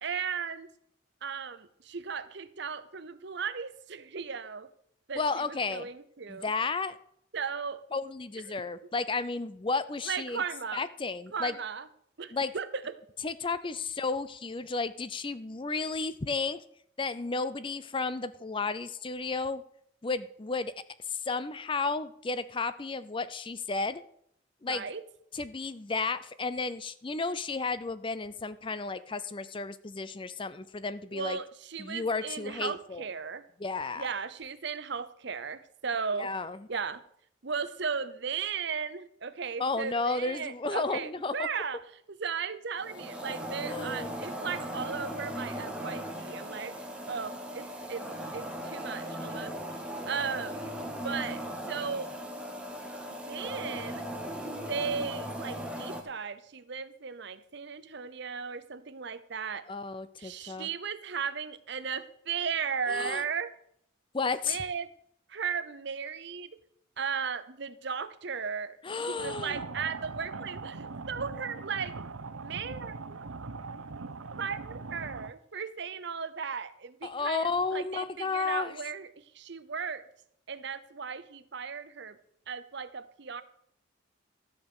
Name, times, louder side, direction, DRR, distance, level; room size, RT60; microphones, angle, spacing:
voice 1, 0.0-0.7 1.2-4.7 5.1-6.5 7.3-7.8 8.5-8.6 10.0-10.9 11.3-11.9 12.2-12.9 24.7-25.0 31.1-33.4 33.9-36.3 36.7-37.0 37.4-41.8 42.1-46.8 47.1-49.8 50.1-50.6 51.0-52.2 53.1-54.1 54.7-59.6 60.2-63.5 64.5-64.9 65.3-66.6 67.0-71.9 72.4-73.2 74.4-80.0 80.5-82.2 82.5-83.4, right 6 dB, 55° right, 12 dB, 0.8 m, -36 dB
voice 2, 5.2-5.9 6.3-7.0 7.9-10.4 10.7-11.5 12.3-12.5 13.2-16.6 17.0-19.6 20.0-20.7 21.1-24.0 24.6-24.8 25.3-31.4 31.8-33.0 33.6-34.1 36.2-36.6 39.6-41.5 43.6-44.2 59.7-60.7 62.9-63.2 64.1-64.6 68.8-69.6 77.0-78.7, left 4 dB, 25° left, 14 dB, 0.5 m, -33 dB
sound 1, 42.8-56.0, equal, 5° right, 1.4 m, -38 dB
sound 2, 69.2-75.3, right 4 dB, 90° right, 0.8 m, -41 dB
13.5 x 5.1 x 8.2 m, 0.69 s
head